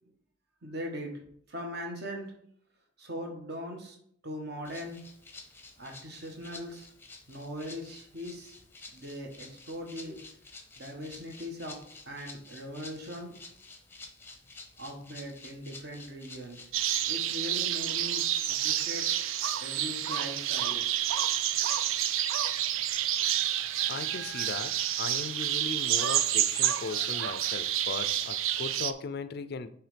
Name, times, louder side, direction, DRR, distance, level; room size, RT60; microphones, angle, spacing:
voice 1, 0.6-1.2 1.5-2.3 3.0-4.0 4.2-5.0 5.8-6.9 7.3-8.6 8.9-10.2 10.8-11.8 12.1-13.3 14.8-16.7 17.0-19.1 19.6-20.9 21.2-21.3 21.6-21.7, equal, 55° right, 2 dB, 1.3 m, -40 dB
Rattle (instrument), 4.6-17.2, left 3 dB, 10° left, 0.7 m, -50 dB
sound 1, 16.7-28.9, right 11 dB, 80° right, 0.4 m, -29 dB
voice 2, 23.9-29.7, left 4 dB, 50° left, 12 dB, 0.4 m, -38 dB
7.2 x 3.2 x 5.1 m, 0.66 s
head